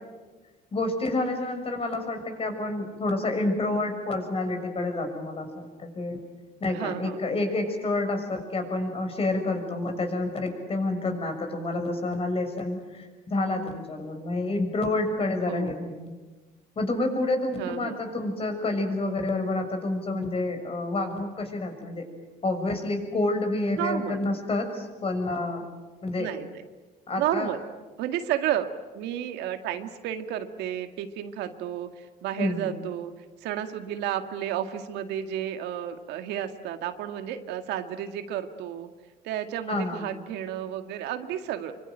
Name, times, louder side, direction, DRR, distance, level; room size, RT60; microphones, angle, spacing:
voice 1, 0.7-6.2 6.6-16.1 16.7-22.0 22.4-25.6 26.0-26.3 27.1-27.5 32.4-32.7 39.7-40.1, left 2 dB, 35° left, 6 dB, 6.6 m, -28 dB
voice 2, 6.7-7.2 15.5-15.9 17.6-18.0 23.8-24.2 26.2-26.6 27.2-27.6 28.0-28.7 28.9-33.1 33.4-38.9 39.2-41.7, right 11 dB, 85° right, 8 dB, 2.1 m, -32 dB
26.5 x 24.5 x 9.2 m, 1.3 s
cardioid pair, 110°, 17 cm